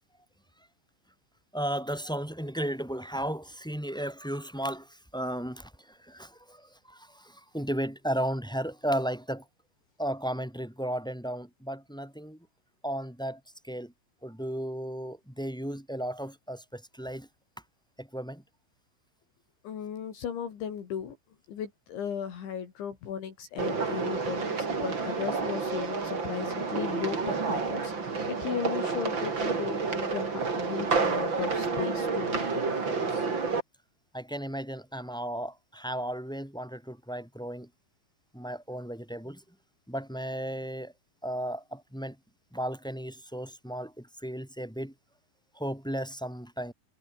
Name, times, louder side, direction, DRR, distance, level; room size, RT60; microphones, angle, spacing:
voice 1, 1.5-9.4 10.0-12.4 12.8-13.9 14.2-17.3 18.0-18.4 34.1-37.7 38.3-39.4 39.9-40.9 41.2-42.1 42.5-44.9 45.5-46.7, equal, ahead, 6.6 m, -34 dB
voice 2, 19.6-21.2 21.5-27.9 28.3-33.3, left 8 dB, 65° left, 5.6 m, -36 dB
sound 1, 23.6-33.6, right 4 dB, 25° right, 3.2 m, -30 dB
omnidirectional pair, 5.9 m